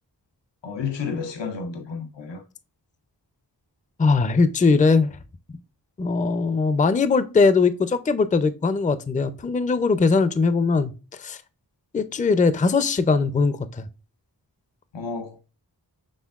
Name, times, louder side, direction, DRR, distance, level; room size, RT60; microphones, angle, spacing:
voice 1, 0.6-2.4 14.9-15.4, left 5 dB, 90° left, 0.6 m, -31 dB
voice 2, 4.0-5.2 6.0-10.9 11.2-11.4 11.9-13.9, left 4 dB, 20° left, 0.4 m, -20 dB
6.4 x 3.4 x 2.3 m
wide cardioid pair, 45°, 42 cm